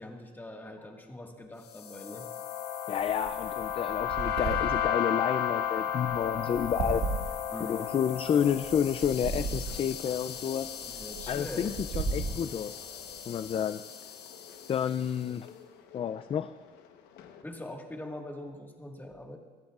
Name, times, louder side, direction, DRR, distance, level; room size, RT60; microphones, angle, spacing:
voice 1, 0.0-2.3 7.5-8.0 10.8-11.8 17.4-19.4, left 1 dB, 10° left, 2 dB, 1.7 m, -42 dB
sound 1, 1.7-15.1, left 8 dB, 75° left, 1.4 m, -35 dB
voice 2, 2.9-7.0 7.6-10.7 11.3-12.8 13.3-13.8 14.7-15.5 15.9-16.5, left 8 dB, 35° left, 12 dB, 0.4 m, -30 dB
sound 2, 3.0-13.5, right 4 dB, 80° right, 1.9 m, -37 dB
sound 3, 7.5-17.4, left 8 dB, 90° left, 1.1 m, -53 dB
27.0 x 11.5 x 2.4 m, 1.4 s
cardioid pair, 110°, 17 cm